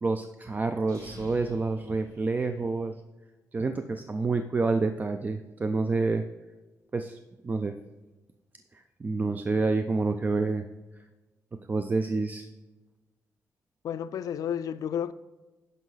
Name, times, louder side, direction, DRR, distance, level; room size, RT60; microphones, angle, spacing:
voice 1, 0.0-2.9 3.5-6.2 6.9-7.2 7.4-7.8 8.7-10.7 11.7-12.5, right 3 dB, 30° right, 0.4 m, -28 dB
sound 1, 0.8-2.9, right 1 dB, 60° right, 2.3 m, -49 dB
voice 2, 13.8-15.1, left 9 dB, 80° left, 0.4 m, -31 dB
11.0 x 5.5 x 3.9 m
cardioid pair, 115°, 6 cm